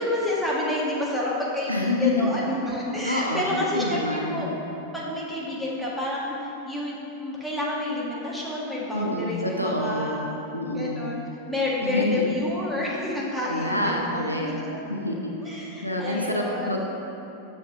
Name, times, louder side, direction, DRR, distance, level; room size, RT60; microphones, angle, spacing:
voice 1, 0.0-4.5 4.9-10.4 10.7-11.2 11.5-14.7 15.4-16.8, left 1 dB, ahead, -6 dB, 1.6 m, -29 dB
voice 2, 1.7-2.3 3.0-4.5 8.9-10.2 10.5-11.0 11.8-12.2 13.5-14.5 14.9-16.8, left 1 dB, 90° right, 0 dB, 0.7 m, -27 dB
6.5 x 5.4 x 5.6 m, 2.9 s
figure-of-eight pair, 90°, 0 cm